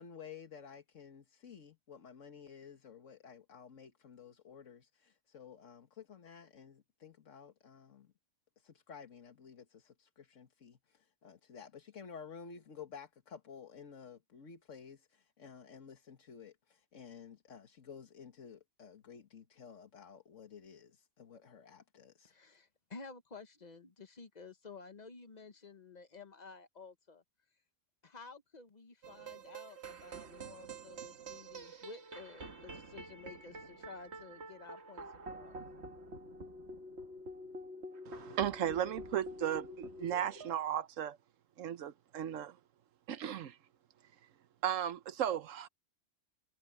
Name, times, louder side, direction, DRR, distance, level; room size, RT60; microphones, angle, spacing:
voice 1, 0.0-8.1 8.6-22.3, left 6 dB, 75° left, 1.9 m, -53 dB
voice 2, 22.2-27.2 28.0-35.6, left 4 dB, 35° left, 1.2 m, -53 dB
sound 1, 29.0-40.6, right 1 dB, 60° right, 1.8 m, -48 dB
voice 3, 38.1-41.2 41.6-42.6 43.1-43.6 44.6-45.7, right 10 dB, 85° right, 1.1 m, -35 dB
omnidirectional pair, 1.3 m